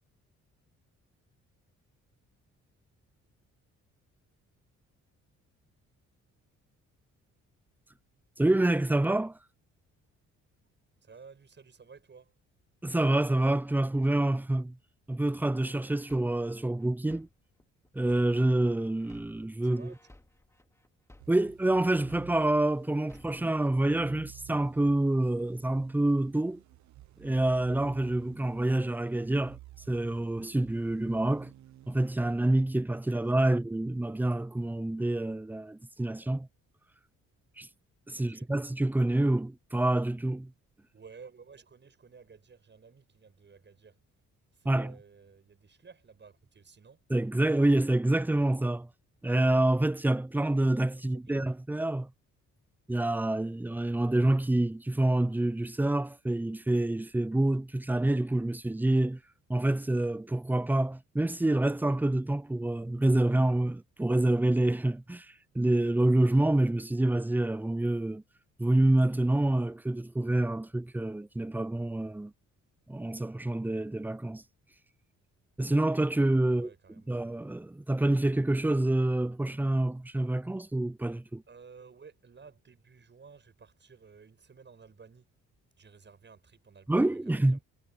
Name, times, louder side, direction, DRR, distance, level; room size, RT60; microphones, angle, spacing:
voice 1, 8.4-9.4 12.8-14.8 15.1-17.3 17.9-19.9 21.3-26.6 27.2-29.6 29.9-31.5 31.9-36.5 37.6-37.7 38.1-40.5 44.7-44.9 47.1-48.9 49.2-52.1 52.9-59.2 59.5-65.3 65.5-68.2 68.6-72.3 72.9-74.4 75.6-76.7 77.1-81.4 86.9-87.6, right 1 dB, 5° right, 0.6 m, -27 dB
voice 2, 11.0-12.3 19.6-20.0 33.3-33.6 38.2-38.5 40.9-44.0 44.5-47.0 50.9-51.4 76.5-77.2 81.5-85.3 85.8-87.6, right 5 dB, 35° right, 7.5 m, -54 dB
sound 1, 15.6-18.6 19.0-22.6 23.0-23.6, left 1 dB, 10° left, 2.5 m, -57 dB
sound 2, 21.2-33.0, right 15 dB, 70° right, 1.2 m, -54 dB
cardioid pair, 90°, 30 cm